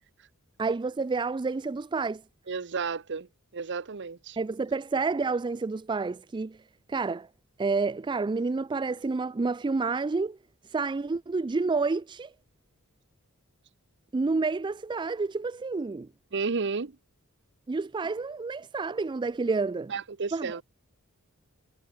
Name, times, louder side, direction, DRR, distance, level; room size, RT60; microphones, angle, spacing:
voice 1, 0.6-2.2 4.4-6.6 6.9-7.3 7.6-10.4 10.7-12.3 14.1-16.1 17.7-19.9 20.3-20.6, right 4 dB, 20° right, 0.3 m, -29 dB
voice 2, 2.5-3.3 3.5-4.4 16.3-17.0 19.9-20.6, right 4 dB, 55° right, 0.8 m, -32 dB
head